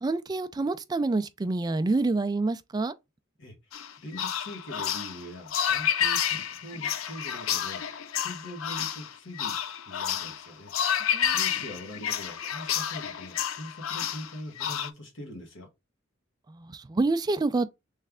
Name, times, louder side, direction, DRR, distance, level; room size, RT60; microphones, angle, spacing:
voice 1, 0.0-2.9 11.1-11.3 16.5-17.7, right 3 dB, 20° right, 0.3 m, -27 dB
sound 1, 3.7-14.9, left 9 dB, 80° left, 0.5 m, -30 dB
voice 2, 4.0-15.7, left 1 dB, 65° left, 1.6 m, -43 dB
3.3 x 3.2 x 3.5 m
head